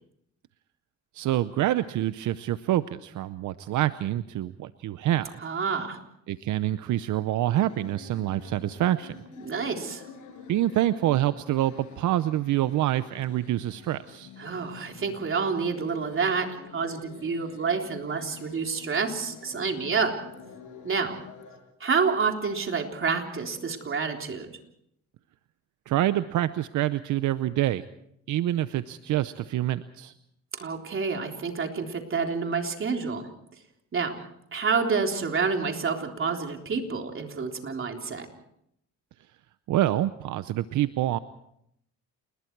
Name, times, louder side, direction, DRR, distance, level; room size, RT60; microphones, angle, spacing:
voice 1, 1.1-5.3 6.3-9.2 10.5-14.3 25.9-27.8 28.3-30.1 39.7-41.2, right 13 dB, 80° right, 13 dB, 0.7 m, -26 dB
voice 2, 5.4-6.0 9.4-10.0 14.4-16.5 16.7-20.1 20.8-21.2 21.8-24.5 30.6-33.3 33.9-34.2 34.5-38.3, right 5 dB, 45° right, 3 dB, 3.6 m, -28 dB
sound 1, 7.6-21.6, left 5 dB, 85° left, 6.9 m, -48 dB
28.5 x 21.0 x 4.7 m, 0.75 s
cardioid pair, 90°, 30 cm